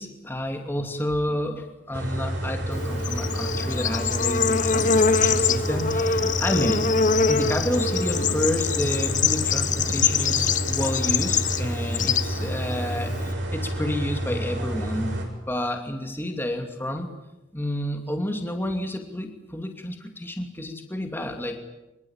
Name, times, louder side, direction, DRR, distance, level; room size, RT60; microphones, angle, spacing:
voice 1, 0.0-6.9 7.3-15.2 15.5-17.1 17.5-21.6, left 1 dB, 10° left, 5 dB, 2.6 m, -30 dB
sound 1, 1.9-15.3, right 1 dB, 65° right, 6.7 m, -29 dB
Bird / Insect, 2.7-13.3, left 5 dB, 40° left, 1.0 m, -24 dB
24.5 x 23.5 x 8.9 m, 0.96 s
head